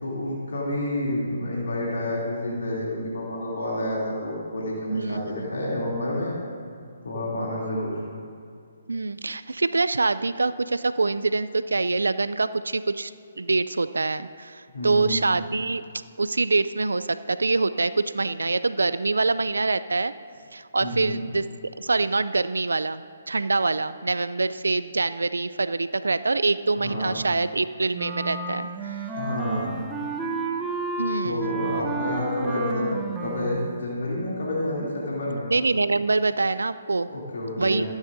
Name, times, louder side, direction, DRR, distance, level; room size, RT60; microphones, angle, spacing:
voice 1, 0.0-6.3 7.0-8.0 14.7-15.2 20.8-21.2 26.8-27.1 29.1-29.7 31.2-32.9 33.2-35.4 37.1-37.9, left 1 dB, 70° left, -5 dB, 2.7 m, -29 dB
voice 2, 4.9-5.5 8.9-13.1 13.4-15.8 16.2-20.1 20.5-21.5 21.8-29.0 31.0-31.6 35.5-37.1 37.6-37.8, right 3 dB, 80° right, 14 dB, 0.3 m, -25 dB
Wind instrument woodwind instrument, 27.9-33.8, right 3 dB, 10° right, 0.6 m, -31 dB
15.5 x 9.7 x 2.6 m, 2.3 s
figure-of-eight pair, 140°, 0 cm